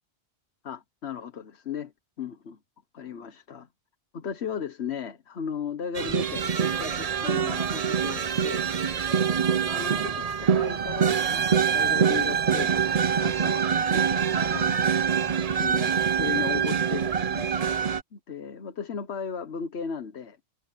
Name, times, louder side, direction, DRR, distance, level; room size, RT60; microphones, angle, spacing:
voice 1, 0.6-1.9 2.2-2.6 2.9-3.7 4.1-8.7 9.5-14.8 15.6-17.6 18.1-20.4, left 7 dB, 75° left, 1.4 m, -36 dB
sound 1, 5.9-18.0, right 7 dB, 40° right, 0.7 m, -25 dB
omnidirectional pair, 1.1 m